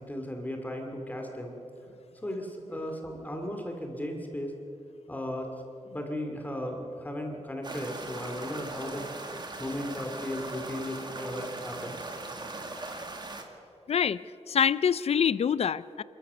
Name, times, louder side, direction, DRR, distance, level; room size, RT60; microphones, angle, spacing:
voice 1, 0.0-1.6 2.2-4.5 5.1-5.5 5.8-9.1 9.6-12.1, left 1 dB, 15° left, 3 dB, 2.4 m, -36 dB
sound 1, 7.6-13.4, right 2 dB, 35° right, 1.9 m, -39 dB
voice 2, 13.9-14.2 14.5-16.0, left 7 dB, 60° left, 18 dB, 0.5 m, -25 dB
28.0 x 13.5 x 6.9 m, 2.8 s
wide cardioid pair, 140°, 12 cm